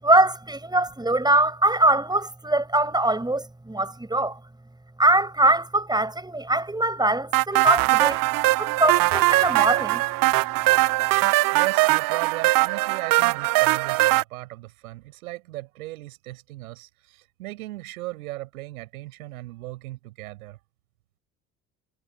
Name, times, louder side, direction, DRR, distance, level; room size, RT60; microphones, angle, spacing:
voice 1, 0.0-4.4 5.0-8.2 8.6-10.0, right 2 dB, 10° right, 7.1 m, -22 dB
sound 1, 7.3-14.2, right 22 dB, 50° right, 0.7 m, -21 dB
voice 2, 11.5-20.6, right 18 dB, 75° right, 5.6 m, -37 dB
figure-of-eight pair, 60°, 44 cm